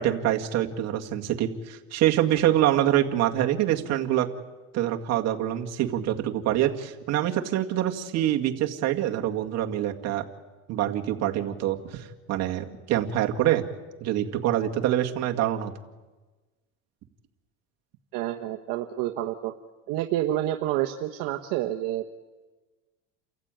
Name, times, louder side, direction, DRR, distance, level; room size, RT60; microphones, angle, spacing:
voice 1, 0.0-4.3 4.7-10.2 10.7-13.6 14.0-15.7, right 12 dB, 45° right, 3 dB, 2.2 m, -25 dB
voice 2, 18.1-19.5 19.9-22.1, right 13 dB, 60° right, 3 dB, 1.3 m, -28 dB
29.5 x 15.0 x 9.2 m, 1.2 s
cardioid pair, 145°, 36 cm